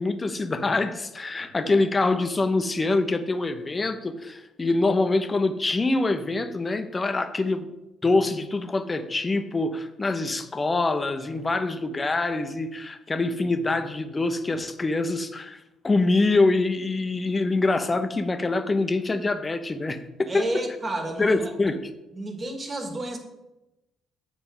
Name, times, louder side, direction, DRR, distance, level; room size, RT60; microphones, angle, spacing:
voice 1, 0.0-7.7 8.0-15.6 15.8-20.4 21.2-21.9, left 3 dB, 30° left, 9 dB, 0.9 m, -25 dB
voice 2, 20.3-21.5 22.1-23.2, right 1 dB, 35° right, 4 dB, 2.0 m, -31 dB
7.8 x 4.6 x 7.0 m, 0.98 s
hypercardioid pair, 45°, 0 cm